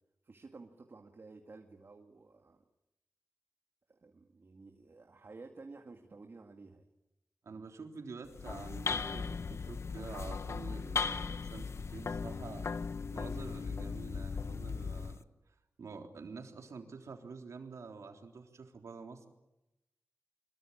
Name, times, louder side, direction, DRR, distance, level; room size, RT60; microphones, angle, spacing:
voice 1, 0.2-2.6 3.9-6.9 7.5-7.6, right 3 dB, 50° right, 4 dB, 2.2 m, -53 dB
voice 2, 7.4-12.7 13.1-19.3, right 4 dB, 80° right, 4 dB, 3.6 m, -48 dB
sound 1, 8.2-15.2, left 5 dB, 65° left, 1.0 m, -37 dB
25.0 x 23.0 x 8.7 m, 0.93 s
wide cardioid pair, 95°, 5 cm